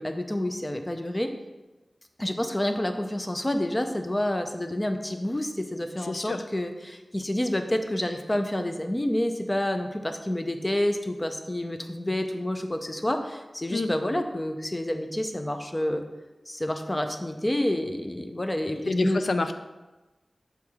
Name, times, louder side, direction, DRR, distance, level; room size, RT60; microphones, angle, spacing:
voice 1, 0.0-1.3 2.2-16.0 16.5-19.3, left 1 dB, 20° left, 6 dB, 0.6 m, -29 dB
voice 2, 6.1-6.4 13.7-13.9 18.7-19.5, left 2 dB, 75° left, 8 dB, 0.4 m, -27 dB
6.9 x 4.7 x 3.6 m, 1.1 s
wide cardioid pair, 80°, 0 cm